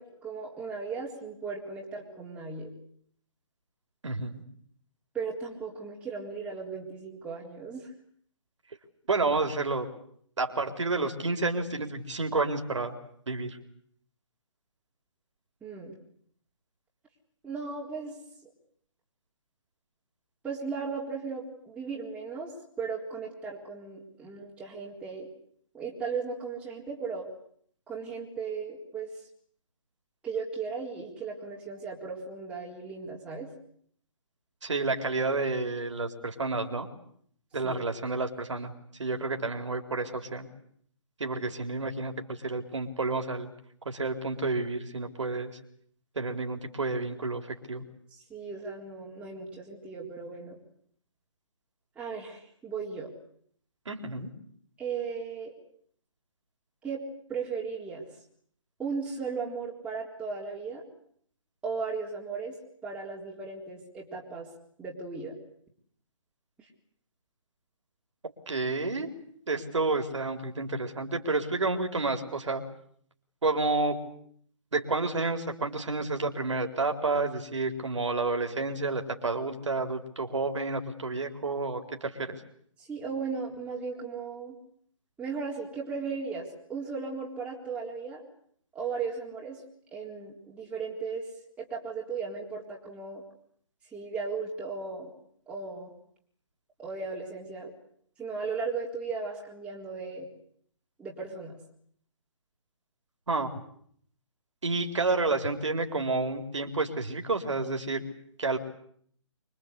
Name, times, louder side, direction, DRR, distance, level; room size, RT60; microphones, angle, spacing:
voice 1, 0.0-2.7 5.1-7.9 15.6-16.0 17.4-18.5 20.4-22.5 22.8-25.3 25.7-27.3 27.9-29.2 30.2-33.5 37.6-37.8 48.1-50.6 52.0-53.1 54.8-55.5 56.8-58.1 58.8-60.8 61.6-62.5 62.8-64.5 64.8-65.4 66.6-66.7 82.8-84.6 85.2-88.2 88.7-89.6 89.9-91.3 91.6-93.2 93.9-95.1 95.5-95.9 96.8-97.7 98.2-100.3 101.0-101.6, right 5 dB, 5° right, -4 dB, 4.0 m, -36 dB
voice 2, 4.0-4.4 9.1-9.9 10.4-13.0 13.3-13.6 34.6-36.9 37.5-38.7 39.0-40.5 41.2-43.5 43.8-45.5 46.2-47.8 53.9-54.3 68.5-69.1 69.5-72.6 73.4-74.0 74.7-82.4 103.3-103.5 104.6-108.0 108.4-108.6, right 3 dB, 70° right, 5 dB, 4.0 m, -30 dB
25.5 x 24.0 x 8.3 m, 0.64 s
figure-of-eight pair, 140°, 16 cm